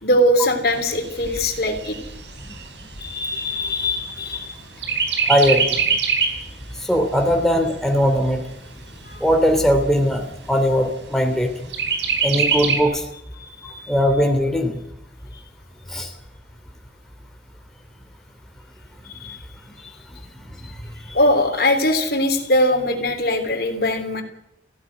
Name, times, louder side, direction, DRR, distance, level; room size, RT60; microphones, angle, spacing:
voice 1, 0.0-2.0 3.0-4.5 13.4-13.9 19.2-19.4 21.1-24.2, left 1 dB, 60° left, 5 dB, 3.4 m, -21 dB
Chirp tweet, 0.7-4.4 4.8-6.5 6.9-7.0 7.4-8.4 9.0-9.1 9.4-9.5 9.9-10.5 11.7-12.8, right 5 dB, 85° right, 4.3 m, -24 dB
voice 2, 5.2-5.8 6.8-8.4 9.2-11.7 12.2-13.0 13.9-14.8 15.9-16.1, equal, ahead, 3 dB, 3.0 m, -19 dB
17.5 x 16.0 x 9.8 m, 0.81 s
head